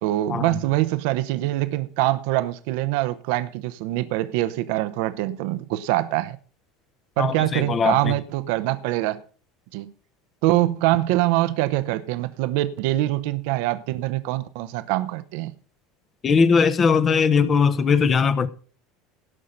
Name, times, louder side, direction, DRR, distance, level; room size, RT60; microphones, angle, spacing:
voice 1, 0.0-6.4 7.2-9.2 9.7-9.9 10.4-15.5, right 16 dB, 60° right, 0.9 m, -24 dB
voice 2, 7.2-8.0 16.2-18.5, left 5 dB, 30° left, 1.1 m, -19 dB
17.5 x 6.3 x 5.4 m
figure-of-eight pair, 70°, 0 cm